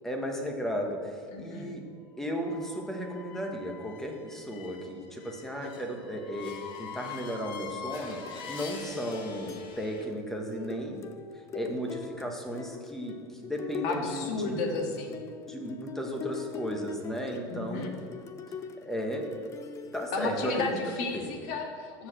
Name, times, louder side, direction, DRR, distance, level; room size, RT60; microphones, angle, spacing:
voice 1, 0.0-1.8 2.2-11.0 11.3-14.6 15.5-17.9 18.8-19.3 19.9-20.8 21.1-21.3, equal, 5° left, 1 dB, 1.3 m, -35 dB
voice 2, 1.3-1.7 13.8-15.2 17.4-17.9 20.1-22.1, left 4 dB, 60° left, 1 dB, 2.0 m, -33 dB
sound 1, 2.3-10.1, left 7 dB, 45° left, 1.3 m, -44 dB
sound 2, 7.9-21.1, left 5 dB, 25° left, 0.6 m, -43 dB
13.0 x 4.9 x 7.5 m, 2.1 s
supercardioid pair, 155°, 11 cm